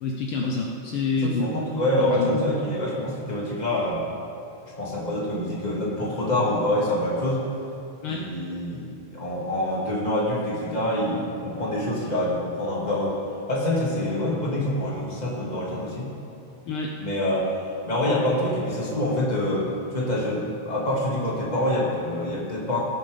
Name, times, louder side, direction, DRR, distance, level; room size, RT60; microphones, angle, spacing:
voice 1, 0.0-1.5 1.9-2.5 8.0-8.3 16.7-16.9, left 4 dB, 80° left, 0 dB, 1.2 m, -27 dB
voice 2, 1.1-4.0 4.8-7.5 8.1-13.2 13.5-16.1 17.0-17.5 17.8-22.8, left 1 dB, 15° left, -6 dB, 1.9 m, -26 dB
17.5 x 8.9 x 3.4 m, 2.6 s
omnidirectional pair, 3.4 m